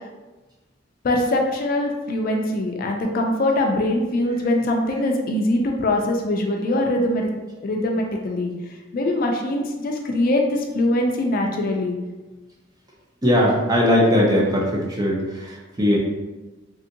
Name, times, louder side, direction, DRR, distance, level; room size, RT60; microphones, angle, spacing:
voice 1, 1.0-7.3 7.6-8.5 8.9-12.0, left 1 dB, 50° left, 2 dB, 0.4 m, -22 dB
voice 2, 13.2-16.0, equal, 20° right, -3 dB, 0.6 m, -19 dB
3.4 x 2.7 x 2.6 m, 1.2 s
head